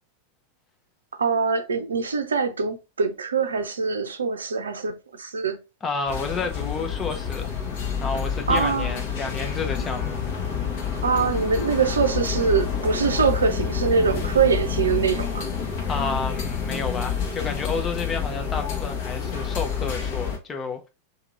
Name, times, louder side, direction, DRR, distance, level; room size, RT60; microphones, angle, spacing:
voice 1, 1.2-4.9 5.2-5.6 8.5-8.9 11.0-15.5, right 5 dB, 70° right, 0.5 m, -23 dB
voice 2, 5.8-7.6 8.0-10.2 15.9-20.9, left 4 dB, 20° left, 0.7 m, -30 dB
sound 1, 6.1-20.4, left 7 dB, 50° left, 1.1 m, -28 dB
2.9 x 2.7 x 3.7 m
figure-of-eight pair, 90°, 0 cm